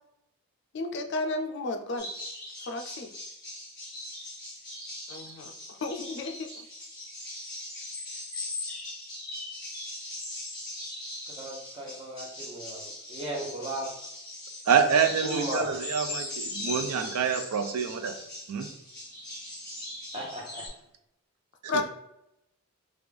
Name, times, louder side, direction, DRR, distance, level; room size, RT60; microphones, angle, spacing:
voice 1, 0.7-2.1 2.7-3.1 5.1-5.5 5.8-6.5 21.7-21.8, left 2 dB, 50° left, 4 dB, 0.3 m, -32 dB
sound 1, 2.0-20.7, left 1 dB, 20° left, 1.2 m, -40 dB
voice 2, 11.3-13.9 15.2-15.7 20.1-20.6, right 1 dB, 25° right, -2 dB, 0.8 m, -36 dB
voice 3, 14.7-18.1 18.5-18.7 21.7-21.8, right 6 dB, 90° right, 8 dB, 0.4 m, -26 dB
3.3 x 2.4 x 3.4 m, 0.83 s
head